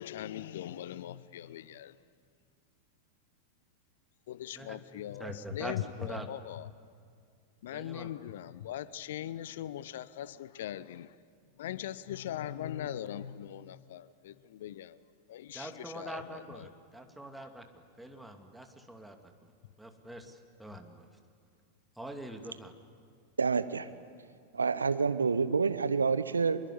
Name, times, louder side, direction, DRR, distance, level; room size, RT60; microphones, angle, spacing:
voice 1, 0.0-2.0 4.3-6.7 7.6-11.2 11.6-15.0 15.3-16.7 20.7-20.8, left 11 dB, 55° left, 0.7 m, -40 dB
voice 2, 4.6-6.3 7.7-8.1 15.5-19.3 19.8-21.1 22.0-22.7, right 1 dB, 5° right, 2.4 m, -44 dB
voice 3, 23.4-23.9 24.5-26.6, right 5 dB, 75° right, 0.9 m, -28 dB
25.0 x 22.0 x 9.9 m
figure-of-eight pair, 90°, 0 cm